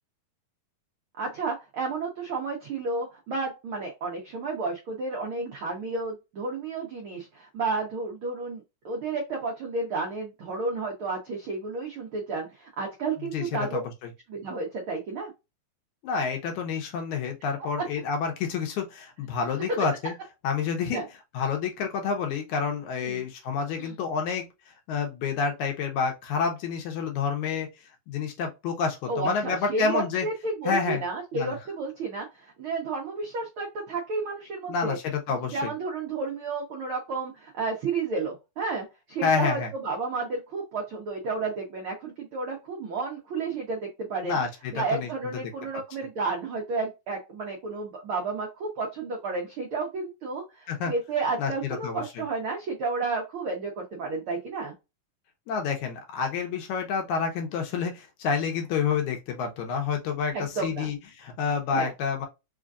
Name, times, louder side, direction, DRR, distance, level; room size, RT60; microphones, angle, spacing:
voice 1, 1.2-13.8 14.3-15.3 20.0-20.1 20.9-21.0 23.0-23.2 23.8-23.9 29.1-35.0 35.5-44.4 44.7-54.7 60.3-60.9 61.7-61.9, right 3 dB, 80° right, 1.2 m, -32 dB
voice 2, 13.3-14.1 16.0-20.1 20.4-21.0 21.3-24.5 24.9-27.7 28.1-30.3 30.7-31.0 31.3-31.6 34.7-35.7 39.2-39.7 44.2-45.1 50.7-50.9 51.4-52.2 55.5-62.3, left 6 dB, 75° left, 2.1 m, -29 dB
5.0 x 2.5 x 2.4 m
omnidirectional pair, 3.6 m